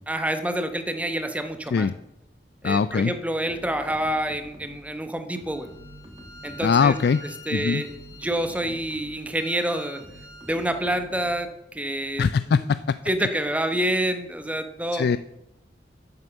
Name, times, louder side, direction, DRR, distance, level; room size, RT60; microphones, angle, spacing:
voice 1, 0.1-1.9 2.6-5.7 6.4-7.0 7.5-10.0 10.4-12.3 13.1-15.1, right 1 dB, 10° right, 8 dB, 0.9 m, -27 dB
voice 2, 2.6-3.1 6.6-7.2 7.5-7.8 12.2-12.8 14.9-15.2, left 5 dB, 60° left, 14 dB, 0.3 m, -21 dB
sound 1, 3.5-5.0 5.4-7.2 7.7-9.3 10.0-11.5, equal, 25° right, 1.7 m, -47 dB
Bowed string instrument, 5.5-10.9, left 1 dB, 20° left, 1.6 m, -46 dB
9.8 x 7.9 x 7.3 m, 0.90 s
head